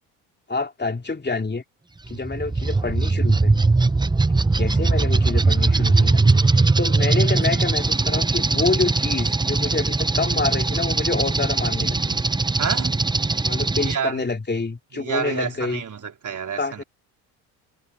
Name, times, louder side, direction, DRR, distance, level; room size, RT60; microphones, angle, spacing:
voice 1, 0.5-1.6 2.1-3.6 4.5-6.2 6.8-12.2 13.4-15.8 16.5-16.8, left 3 dB, 20° left, 3.4 m, -27 dB
sound 1, 2.1-14.0, right 3 dB, 10° right, 0.8 m, -20 dB
voice 2, 12.6-13.0 13.7-14.2 15.0-16.8, right 7 dB, 40° right, 3.7 m, -29 dB
hypercardioid pair, 65°, 48 cm